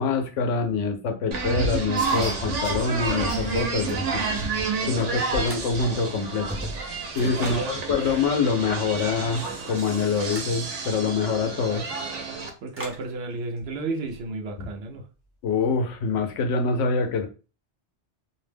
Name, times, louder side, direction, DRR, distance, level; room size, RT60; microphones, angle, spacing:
voice 1, 0.0-4.2 4.9-6.5 7.2-11.8 14.6-14.7 15.4-17.3, left 4 dB, 90° left, 0.9 m, -25 dB
sound 1, 1.3-12.5, right 4 dB, 90° right, 1.0 m, -30 dB
sound 2, 2.0-3.7 4.1-4.8 5.4-5.5 5.8-6.2 6.8-6.9 7.1-9.4 9.7-10.0 11.3-11.6 12.7-12.8 13.0-13.1 13.4-14.3, left 1 dB, 50° left, 1.2 m, -41 dB
voice 2, 4.8-5.2 7.2-7.8 12.6-15.1, right 3 dB, 65° right, 0.8 m, -33 dB
sound 3, 5.4-6.0 6.4-7.7 10.3-10.6 12.7-13.1, equal, 15° right, 0.5 m, -37 dB
2.6 x 2.0 x 3.3 m
omnidirectional pair, 1.2 m